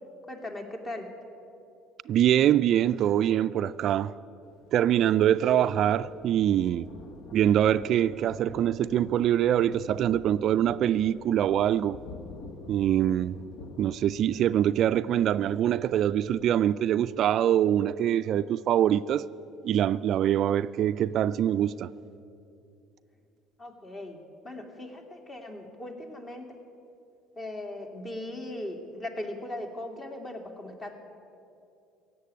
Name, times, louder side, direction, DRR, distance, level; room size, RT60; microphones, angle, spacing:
voice 1, 0.3-1.1 23.6-24.2 24.4-26.4 27.4-30.9, left 1 dB, 35° left, 2.5 m, -38 dB
voice 2, 2.1-4.1 4.7-6.9 7.3-12.0 12.7-13.4 13.8-19.3 19.6-21.9, right 10 dB, 55° right, 0.3 m, -24 dB
Thunder, 4.4-16.8, left 4 dB, 65° left, 1.1 m, -48 dB
16.5 x 7.7 x 9.6 m
hypercardioid pair, 65°, 0 cm